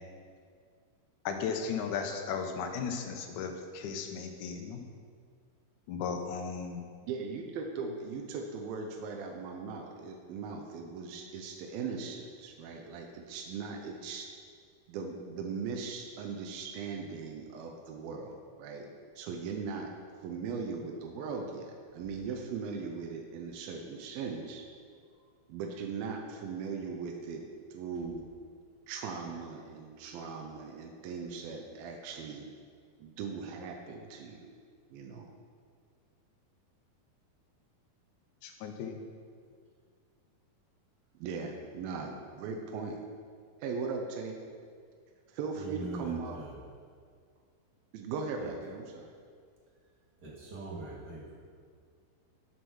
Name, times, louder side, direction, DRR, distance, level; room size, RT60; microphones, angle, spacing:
voice 1, 1.3-4.8 5.9-6.8 38.4-39.0, left 6 dB, 70° left, 4 dB, 2.0 m, -36 dB
voice 2, 7.0-14.3 14.9-18.9 19.2-19.9 20.2-24.7 25.5-27.4 27.7-28.2 28.9-32.5 33.0-34.5 34.9-35.3 41.2-43.0 43.6-44.4 45.3-46.4 47.9-49.1, right 5 dB, 80° right, 2 dB, 2.6 m, -39 dB
voice 3, 45.5-46.6 48.4-48.5 50.2-51.3, right 2 dB, 35° right, -6 dB, 1.8 m, -42 dB
7.8 x 7.2 x 6.3 m, 2.1 s
omnidirectional pair, 4.3 m